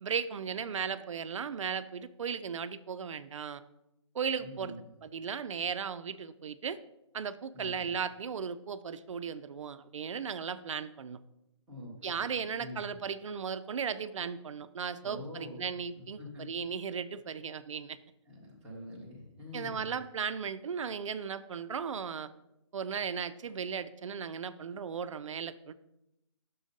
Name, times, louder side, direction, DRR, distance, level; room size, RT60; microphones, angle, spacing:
voice 1, 0.0-3.6 4.1-4.7 5.0-6.8 7.1-11.2 12.0-18.0 19.5-22.3 22.7-25.7, right 6 dB, 80° right, 13 dB, 0.4 m, -36 dB
voice 2, 4.4-4.8 7.5-7.8 11.7-12.8 15.0-15.6 16.0-16.4 18.3-19.9, left 1 dB, 5° right, -8 dB, 0.4 m, -45 dB
6.0 x 3.8 x 5.1 m, 0.88 s
hypercardioid pair, 175°, 16 cm